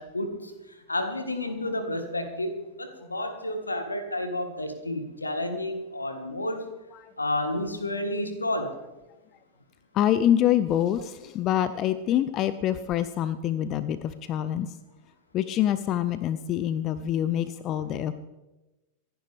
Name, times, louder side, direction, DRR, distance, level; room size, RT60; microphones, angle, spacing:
voice 1, 0.0-6.7 7.2-8.7, left 1 dB, 80° left, 7 dB, 1.8 m, -31 dB
voice 2, 9.9-14.8 15.3-18.1, left 11 dB, 35° left, 14 dB, 0.6 m, -26 dB
26.5 x 10.5 x 3.5 m, 1.1 s
figure-of-eight pair, 90°, 0 cm